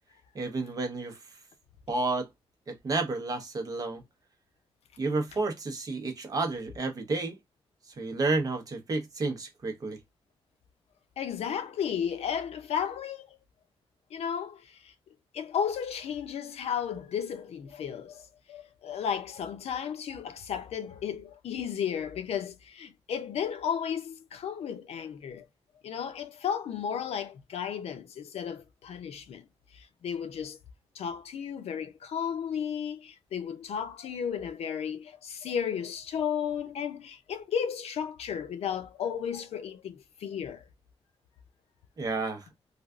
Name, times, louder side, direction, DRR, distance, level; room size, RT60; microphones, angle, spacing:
voice 1, 0.3-1.2 1.9-2.3 2.7-4.0 5.0-7.4 8.0-10.0 42.0-42.5, right 3 dB, 35° right, 0.8 m, -31 dB
voice 2, 11.2-13.4 14.1-14.9 15.3-25.5 25.8-29.5 29.7-30.6 30.9-40.7, left 8 dB, 90° left, 0.5 m, -34 dB
3.3 x 2.4 x 2.3 m
wide cardioid pair, 175°, 10 cm